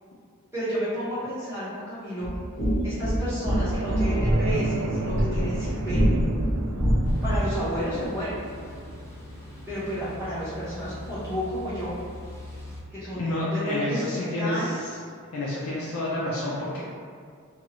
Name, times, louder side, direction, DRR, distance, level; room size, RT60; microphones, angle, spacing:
voice 1, 0.5-2.3 2.8-6.2 7.2-8.4 9.7-12.0 12.9-14.8, equal, 10° right, -14 dB, 1.0 m, -31 dB
sound 1, 2.2-7.6, equal, 40° left, 0.9 m, -25 dB
sound 2, 3.5-12.4 12.8-12.9 15.0-15.1, right 3 dB, 85° right, 0.3 m, -35 dB
sound 3, 7.0-12.8, left 1 dB, 15° left, 0.4 m, -42 dB
voice 2, 13.2-15.0 15.3-16.8, left 1 dB, 70° left, -6 dB, 0.4 m, -29 dB
2.7 x 2.3 x 2.8 m, 2.1 s
head